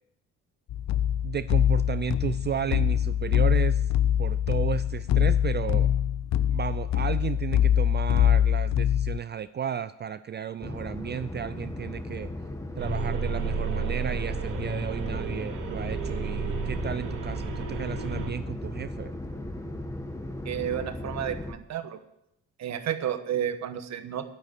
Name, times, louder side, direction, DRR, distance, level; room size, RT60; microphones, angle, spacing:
sound 1, 0.7-9.2, left 10 dB, 65° left, 0.6 m, -24 dB
voice 1, 1.2-3.9 4.2-6.0 6.5-12.3 12.8-19.1, right 9 dB, 35° right, 14 dB, 0.4 m, -33 dB
sound 2, 10.6-21.5, left 1 dB, 10° left, 1.2 m, -37 dB
sound 3, 12.8-18.3, right 4 dB, 90° right, 2.7 m, -32 dB
voice 2, 20.4-22.0 22.6-24.3, right 10 dB, 65° right, 9 dB, 1.2 m, -31 dB
9.3 x 8.2 x 9.2 m, 0.81 s
cardioid pair, 90°, 30 cm